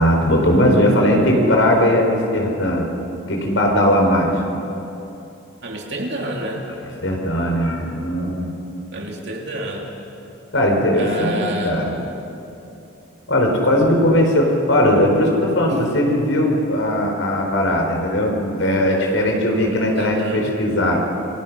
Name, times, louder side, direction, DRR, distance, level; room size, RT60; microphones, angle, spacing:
voice 1, 0.0-2.8 3.3-4.4 7.0-8.5 10.5-11.9 13.3-21.0, equal, 70° left, 1 dB, 4.5 m, -18 dB
voice 2, 5.6-6.7 8.9-9.9 10.9-11.9 19.9-20.5, right 1 dB, 55° right, 0 dB, 3.0 m, -28 dB
28.0 x 20.5 x 6.2 m, 2.8 s
head